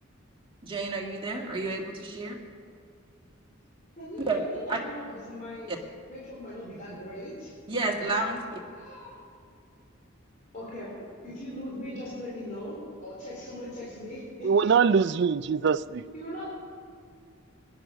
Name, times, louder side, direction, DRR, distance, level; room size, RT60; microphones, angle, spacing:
voice 1, 0.6-2.4 4.2-4.4 4.7-4.8 5.7-5.8 7.7-8.6, right 3 dB, 25° right, 0 dB, 1.8 m, -30 dB
voice 2, 4.0-5.0 5.3-5.7 6.1-7.5 8.7-9.2 10.5-10.9 11.2-14.7 16.1-16.5, left 1 dB, 40° left, -7 dB, 3.9 m, -39 dB
voice 3, 14.4-16.0, right 6 dB, 55° right, 14 dB, 0.4 m, -23 dB
18.5 x 10.5 x 6.3 m, 2.2 s
head